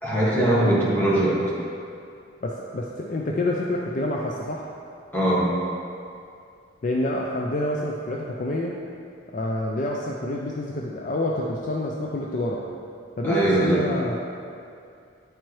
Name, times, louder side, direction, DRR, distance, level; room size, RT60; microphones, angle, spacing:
voice 1, 0.0-1.4 5.1-5.5 13.2-13.8, right 1 dB, 10° left, -8 dB, 1.3 m, -21 dB
voice 2, 2.4-4.7 6.8-8.8 9.3-12.6 13.2-14.2, left 1 dB, 40° left, -2 dB, 0.4 m, -27 dB
9.2 x 4.4 x 3.1 m, 2.4 s
head